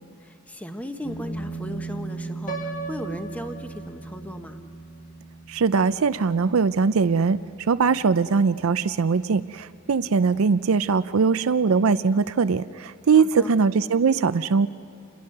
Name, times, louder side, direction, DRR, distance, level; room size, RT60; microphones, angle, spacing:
voice 1, 0.2-4.6 13.1-13.5, equal, 5° left, 6 dB, 1.1 m, -36 dB
sound 1, 1.0-10.1, right 3 dB, 60° left, 6.9 m, -39 dB
Piano, 2.5-4.4, right 3 dB, 40° left, 1.4 m, -37 dB
voice 2, 5.5-7.4 7.7-14.7, right 5 dB, 70° right, 14 dB, 0.5 m, -21 dB
28.5 x 22.0 x 6.6 m, 3.0 s
head